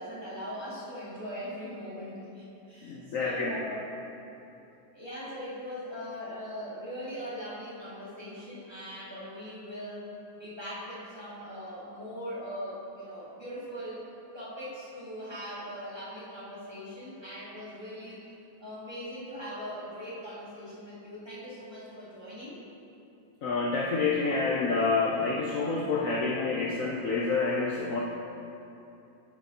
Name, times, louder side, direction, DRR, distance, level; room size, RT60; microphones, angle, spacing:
voice 1, 0.0-3.9 4.9-10.1 10.4-14.1 14.3-18.3 18.6-22.6, equal, 15° right, -9 dB, 1.9 m, -40 dB
voice 2, 2.8-3.6 23.4-28.0, left 4 dB, 75° left, -2 dB, 0.7 m, -28 dB
10.5 x 7.8 x 2.8 m, 2.8 s
omnidirectional pair, 2.1 m